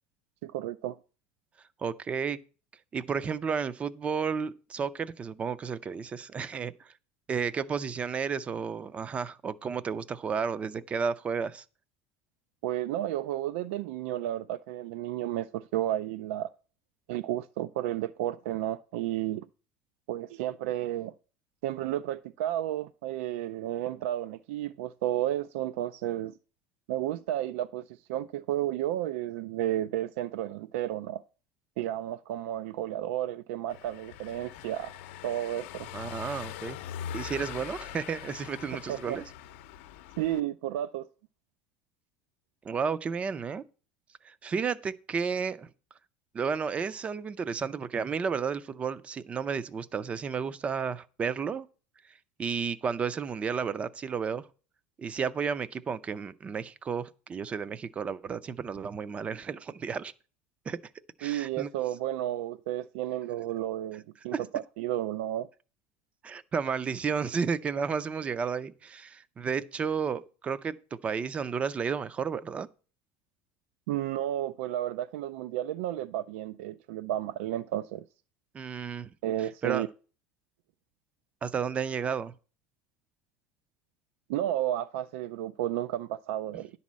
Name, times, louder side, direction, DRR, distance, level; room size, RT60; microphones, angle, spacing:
voice 1, 0.4-1.0 12.6-16.5 17.1-19.5 20.1-21.1 21.6-26.3 26.9-27.8 28.1-31.2 31.8-34.9 35.2-35.9 38.9-39.2 40.2-41.1 61.2-65.5 73.9-78.0 79.2-79.9 84.3-86.7, right 13 dB, 85° right, 0.4 m, -32 dB
voice 2, 1.8-2.4 2.9-6.9 7.3-11.6 35.9-36.8 37.1-39.2 42.6-43.6 44.2-45.7 46.3-51.7 52.4-54.5 55.0-60.1 60.7-60.8 61.2-61.7 64.3-64.4 66.2-72.7 78.5-79.1 79.4-79.9 81.4-82.3, right 6 dB, 20° right, 0.4 m, -32 dB
Car passing by / Engine, 33.7-40.4, left 10 dB, 75° left, 0.7 m, -42 dB
10.5 x 4.1 x 7.4 m
cardioid pair, 160°, 7 cm